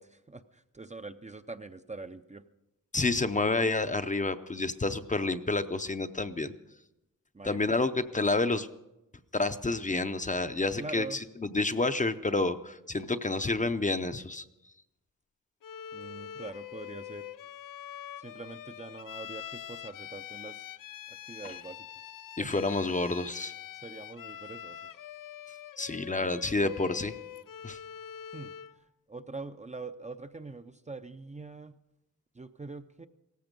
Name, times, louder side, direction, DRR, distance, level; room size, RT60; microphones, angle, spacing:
voice 1, 0.0-2.4 7.3-7.9 10.8-11.2 15.9-17.3 18.2-20.7 21.3-21.9 22.4-22.6 23.8-24.8 26.1-26.4 28.3-28.5 29.1-31.8 32.3-33.1, right 3 dB, 20° right, 9 dB, 0.5 m, -43 dB
voice 2, 2.9-6.5 7.4-8.7 9.3-14.4 22.4-23.5 25.8-27.2 27.6-27.8, left 3 dB, 25° left, 10 dB, 0.6 m, -29 dB
Bowed string instrument, 15.6-28.8, left 10 dB, 85° left, 0.5 m, -44 dB
17.5 x 15.0 x 5.2 m, 0.93 s
wide cardioid pair, 125°, 32 cm